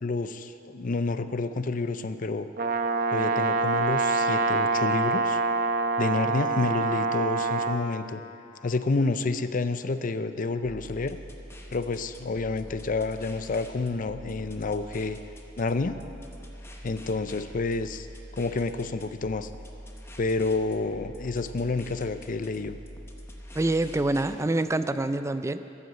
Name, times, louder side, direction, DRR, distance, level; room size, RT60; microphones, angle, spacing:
voice 1, 0.0-2.5 3.1-5.4 6.0-8.2 8.6-11.2 11.7-15.2 15.6-16.0 16.8-18.1 18.3-19.5 20.2-22.8, left 3 dB, 45° left, 11 dB, 0.5 m, -29 dB
Brass instrument, 2.6-7.8, right 3 dB, 50° right, 0.9 m, -25 dB
sound 1, 10.6-24.4, equal, 15° left, 1.0 m, -45 dB
voice 2, 23.6-25.6, right 2 dB, 15° right, 11 dB, 0.4 m, -26 dB
13.5 x 8.4 x 7.6 m, 2.7 s
head